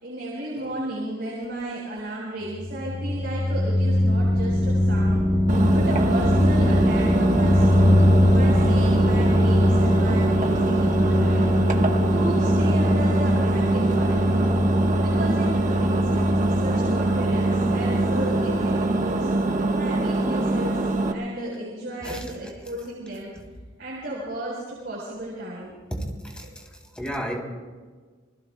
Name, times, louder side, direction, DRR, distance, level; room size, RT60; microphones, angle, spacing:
voice 1, 0.0-5.3 5.7-8.0 8.3-11.5 12.1-14.4 15.0-19.3 19.7-20.8 21.1-23.3 23.8-25.8 26.4-26.6, right 1 dB, 60° right, -5 dB, 4.4 m, -34 dB
sound 1, 2.5-19.2, left 1 dB, 35° left, 1.8 m, -22 dB
Engine, 5.5-21.1, right 2 dB, 40° right, 1.2 m, -24 dB
voice 2, 25.9-26.4 26.9-27.4, equal, 5° left, -1 dB, 3.1 m, -31 dB
28.5 x 20.5 x 2.3 m, 1.4 s
head